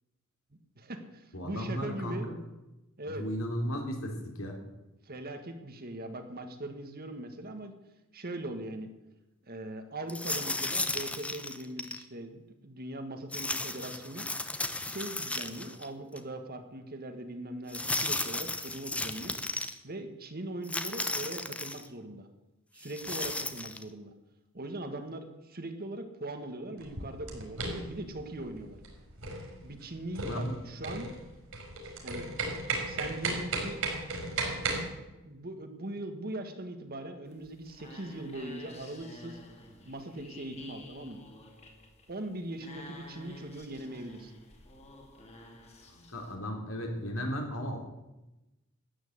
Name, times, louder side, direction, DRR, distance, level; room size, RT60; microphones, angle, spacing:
voice 1, 0.7-2.3 3.0-3.3 5.0-7.7 8.1-8.9 9.5-14.3 14.8-19.4 19.8-22.3 22.7-24.1 24.5-28.8 29.6-31.1 32.0-32.3 32.9-33.8 35.2-39.4 39.8-41.2 42.1-44.3, right 1 dB, 45° right, 7 dB, 1.7 m, -40 dB
voice 2, 1.3-2.3 3.1-4.6 30.3-30.5 45.9-47.8, equal, 75° left, 2 dB, 3.2 m, -35 dB
sound 1, 10.1-12.0 13.3-15.9 16.2-16.3 17.7-19.7 20.6-21.9 22.8-23.8, left 2 dB, 5° left, 0.8 m, -34 dB
sound 2, 26.8-34.8, right 3 dB, 65° right, 4.8 m, -35 dB
sound 3, 37.3-46.4, left 1 dB, 30° left, 2.3 m, -51 dB
13.0 x 9.4 x 8.0 m, 0.98 s
head